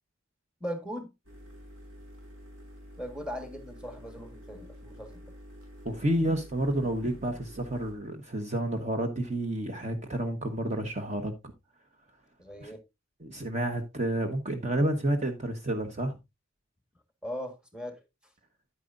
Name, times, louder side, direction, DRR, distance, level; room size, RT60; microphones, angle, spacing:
voice 1, 0.6-1.1 3.0-5.3 12.4-12.8 17.2-18.0, equal, 5° right, 1.6 m, -39 dB
sound 1, 1.2-9.5, equal, 80° right, 5.4 m, -49 dB
voice 2, 5.8-11.5 12.6-12.7 13.2-16.2, right 1 dB, 35° right, 1.1 m, -30 dB
9.8 x 9.2 x 2.5 m
head